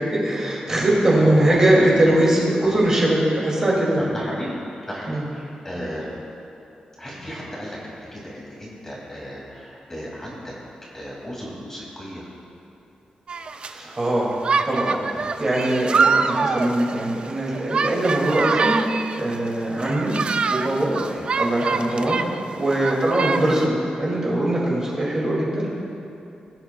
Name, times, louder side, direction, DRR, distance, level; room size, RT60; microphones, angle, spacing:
voice 1, 0.1-4.0 5.1-5.3 13.5-14.3 14.6-18.7 19.2-20.1 20.5-20.9 21.4-25.7, right 1 dB, 25° right, -5 dB, 2.3 m, -21 dB
voice 2, 1.2-1.6 2.1-2.3 2.6-2.7 3.9-6.2 7.0-10.5 10.9-12.2 15.1-15.3 21.0-21.4 23.0-23.1, equal, 15° left, -5 dB, 2.3 m, -35 dB
sound 1, 13.3-13.7 14.4-19.3 19.8-22.4 22.7-23.7, right 5 dB, 45° right, 0.4 m, -24 dB
19.5 x 8.8 x 2.3 m, 2.7 s
wide cardioid pair, 155°, 2 cm